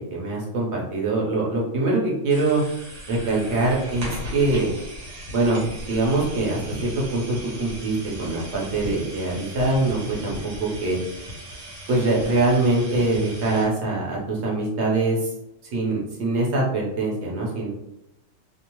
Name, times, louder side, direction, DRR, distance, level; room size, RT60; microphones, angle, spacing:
voice 1, 0.0-2.6 3.1-4.7 5.3-5.6 5.9-11.0 11.9-15.3 15.7-17.7, right 2 dB, 60° right, -3 dB, 0.9 m, -23 dB
sound 1, 2.3-13.6, equal, 80° right, 1.3 m, -37 dB
2.6 x 2.0 x 2.9 m, 0.85 s
omnidirectional pair, 1.4 m